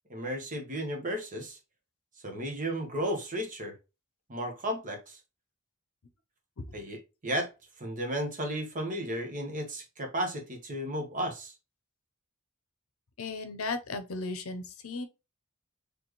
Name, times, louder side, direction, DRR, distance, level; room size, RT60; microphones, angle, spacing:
voice 1, 0.1-1.6 2.2-3.7 4.3-5.2 6.7-7.5 7.8-11.5, equal, 35° right, 1.2 m, -34 dB
voice 2, 13.2-15.0, left 3 dB, 70° left, 0.7 m, -35 dB
4.3 x 3.3 x 3.0 m
head